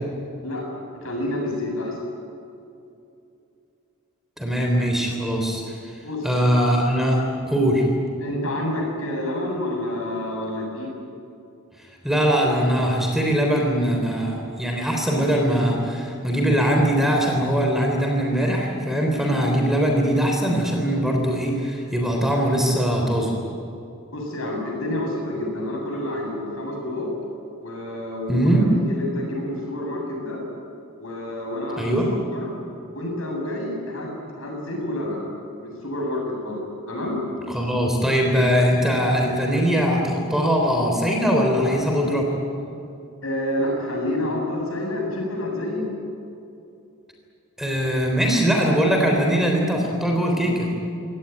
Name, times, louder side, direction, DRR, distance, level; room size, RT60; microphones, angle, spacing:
voice 1, 1.0-2.0 6.0-6.3 8.2-11.0 24.1-27.1 27.6-28.6 28.9-30.4 31.0-32.0 32.3-32.5 32.9-34.1 34.4-35.3 35.5-36.6 36.9-37.2 43.2-45.9, left 1 dB, 70° left, 0 dB, 7.7 m, -28 dB
voice 2, 4.4-5.8 6.2-7.9 12.0-23.3 28.3-28.7 31.8-32.1 37.5-42.3 47.6-50.7, equal, ahead, 1 dB, 3.5 m, -21 dB
25.0 x 18.0 x 9.5 m, 2.7 s
head